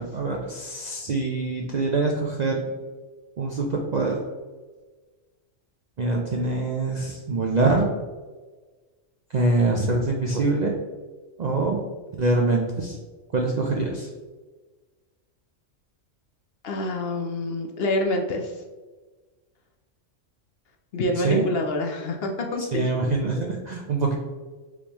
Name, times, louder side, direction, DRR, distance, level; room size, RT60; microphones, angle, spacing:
voice 1, 0.0-2.6 3.4-4.2 6.0-7.9 9.3-10.7 11.4-11.8 12.2-13.0 13.3-14.1 21.2-21.5 22.7-24.2, right 3 dB, 60° right, 0 dB, 0.4 m, -24 dB
voice 2, 16.6-18.6 20.9-22.9, left 1 dB, 60° left, 3 dB, 0.7 m, -26 dB
4.9 x 3.4 x 2.9 m, 1.3 s
omnidirectional pair, 1.3 m